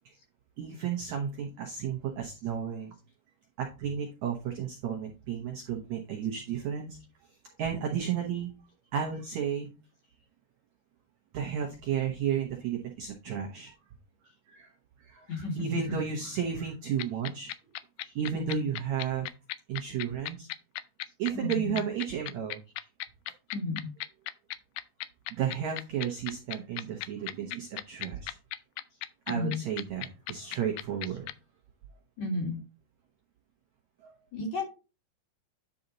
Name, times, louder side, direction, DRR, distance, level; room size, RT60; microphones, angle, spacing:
voice 1, 0.6-2.9 3.6-7.0 7.6-8.5 8.9-9.7 11.3-13.7 14.5-14.7 15.0-17.5 18.1-19.3 19.7-20.5 21.2-22.6 25.3-28.4 29.3-31.3 34.0-34.1, right 8 dB, 75° right, 2 dB, 1.6 m, -33 dB
sound 1, 17.0-31.3, left 16 dB, 85° left, 2.4 m, -36 dB
voice 2, 18.0-18.6 21.3-21.8 23.5-23.9 29.3-29.6 32.2-32.6 34.3-34.6, left 3 dB, 50° left, 1 dB, 2.9 m, -33 dB
10.0 x 4.2 x 3.9 m, 0.30 s
omnidirectional pair, 4.6 m